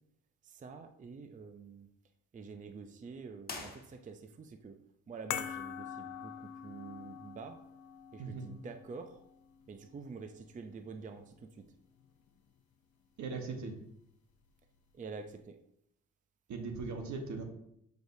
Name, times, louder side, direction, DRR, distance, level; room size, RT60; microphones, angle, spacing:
voice 1, 0.4-1.9 2.3-4.7 5.1-7.6 8.1-9.2 9.7-11.3 14.9-15.6, right 4 dB, 25° right, 6 dB, 0.5 m, -47 dB
sound 1, 3.4-4.5, left 3 dB, 30° left, 1.3 m, -46 dB
sound 2, 5.3-11.7 12.0-12.1, left 9 dB, 75° left, 0.6 m, -45 dB
voice 2, 8.2-8.5 13.2-13.8 16.5-17.4, right 4 dB, 70° right, 4 dB, 1.3 m, -39 dB
7.6 x 5.1 x 2.7 m, 0.75 s
cardioid pair, 90°, 30 cm